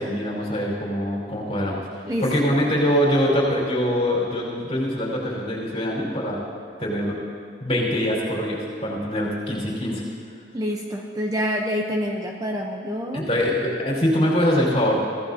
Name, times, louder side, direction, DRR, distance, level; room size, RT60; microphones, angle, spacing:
voice 1, 0.0-1.8 2.2-6.4 6.8-7.1 7.6-10.0 13.1-15.0, equal, 30° left, -4 dB, 4.7 m, -23 dB
voice 2, 10.5-13.3, equal, 20° right, 1 dB, 0.8 m, -27 dB
24.5 x 15.5 x 2.8 m, 2.4 s
head